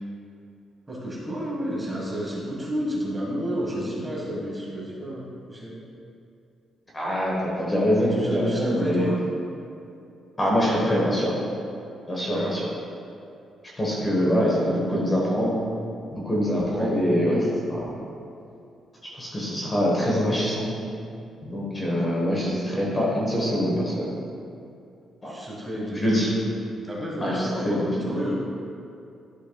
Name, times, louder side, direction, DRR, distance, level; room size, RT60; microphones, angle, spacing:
voice 1, 0.9-5.8 8.0-9.2 12.3-12.5 16.7-17.0 25.2-26.3 26.8-28.3, equal, 15° right, -5 dB, 1.5 m, -31 dB
voice 2, 6.9-9.1 10.4-11.3 12.1-12.7 13.8-15.5 16.1-17.9 19.1-20.7 21.4-24.1 25.2-25.3 25.9-26.3 27.2-28.1, equal, 20° left, -5 dB, 1.2 m, -24 dB
11.5 x 5.5 x 2.3 m, 2.6 s
cardioid pair, 160°, 0 cm